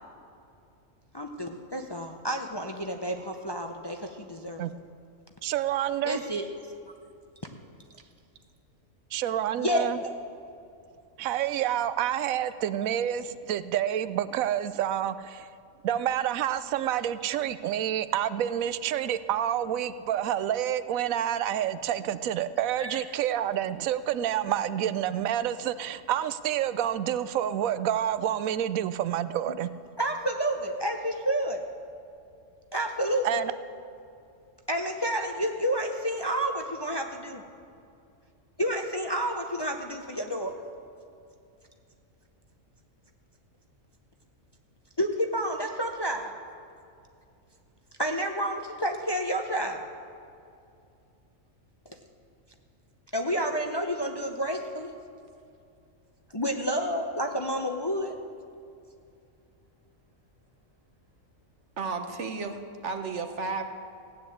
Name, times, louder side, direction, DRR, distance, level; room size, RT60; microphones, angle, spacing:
voice 1, 1.1-4.6 6.0-6.7 9.6-9.9 22.8-23.0 30.0-31.6 32.7-33.4 34.7-37.4 38.6-40.6 45.0-46.4 48.0-49.9 51.9-52.0 53.1-54.9 56.3-58.2, equal, 25° left, 4 dB, 0.6 m, -30 dB
voice 2, 5.4-6.2 9.1-10.0 11.2-15.5 15.8-29.7 33.2-33.5, right 10 dB, 90° right, 14 dB, 1.0 m, -28 dB
voice 3, 61.8-62.6 62.8-63.6, right 4 dB, 60° right, 6 dB, 1.4 m, -32 dB
15.5 x 9.6 x 7.9 m, 2.5 s
omnidirectional pair, 1.4 m